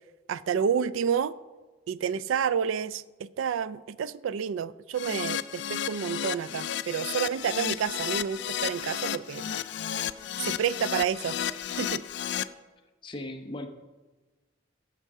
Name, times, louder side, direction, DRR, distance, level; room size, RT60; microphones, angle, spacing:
voice 1, 0.3-1.3 1.9-9.5 10.4-11.3 11.8-12.0, right 7 dB, 85° right, 18 dB, 0.3 m, -29 dB
Keyboard (musical), 4.9-12.4, left 9 dB, 60° left, 0.3 m, -32 dB
voice 2, 13.0-13.7, left 1 dB, 25° left, 4 dB, 0.8 m, -38 dB
15.0 x 6.5 x 3.6 m, 1.2 s
head